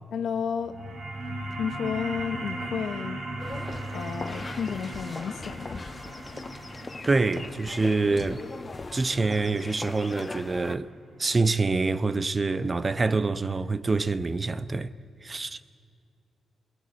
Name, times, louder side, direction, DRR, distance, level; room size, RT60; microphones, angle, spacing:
voice 1, 0.1-0.8 1.6-3.2 3.9-5.8, left 7 dB, 65° left, 1.3 m, -32 dB
sound 1, 0.6-11.7, right 2 dB, 65° right, 3.4 m, -38 dB
sound 2, 3.4-10.8, left 3 dB, 35° left, 1.2 m, -40 dB
voice 2, 7.1-8.4 8.9-10.9 11.2-14.9 15.2-15.6, right 3 dB, 35° right, 0.9 m, -26 dB
28.0 x 19.5 x 8.4 m
supercardioid pair, 50°, 0 cm